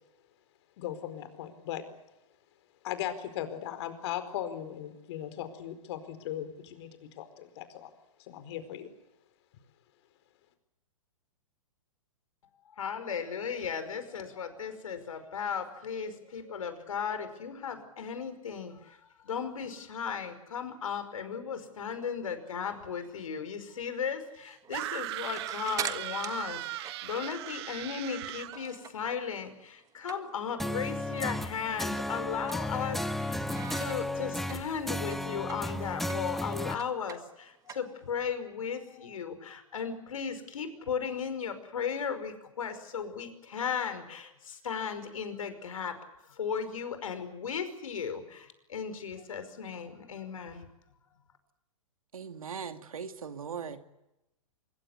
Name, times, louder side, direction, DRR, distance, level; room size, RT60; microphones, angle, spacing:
voice 1, 0.8-1.8 2.8-6.9 7.2-7.9 8.2-8.9, left 11 dB, 50° left, 4.6 m, -38 dB
voice 2, 12.8-19.0 19.2-33.4 33.8-46.0 46.4-50.7, left 6 dB, 75° left, 5.4 m, -36 dB
sound 1, 24.6-29.1 29.4-30.6 30.9-31.0 31.3-31.5 31.9-33.1 33.5-38.3, right 8 dB, 20° right, 1.6 m, -43 dB
sound 2, 24.7-28.6, right 17 dB, 45° right, 1.0 m, -38 dB
sound 3, 30.6-36.7, left 1 dB, ahead, 1.1 m, -34 dB
voice 3, 52.1-53.8, right 6 dB, 80° right, 2.4 m, -39 dB
24.5 x 23.0 x 8.3 m
hypercardioid pair, 125°, 18 cm